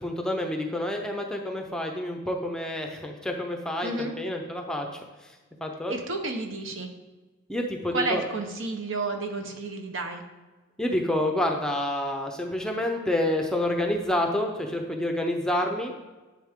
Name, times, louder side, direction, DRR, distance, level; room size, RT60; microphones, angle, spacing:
voice 1, 0.0-3.9 4.2-4.9 5.2-5.3 5.6-5.9 7.5-8.2 10.8-15.9, left 1 dB, 5° left, 2 dB, 0.6 m, -28 dB
voice 2, 3.8-4.1 5.9-6.9 7.9-10.2, right 2 dB, 60° right, 4 dB, 1.1 m, -31 dB
10.5 x 6.7 x 3.7 m, 1.2 s
head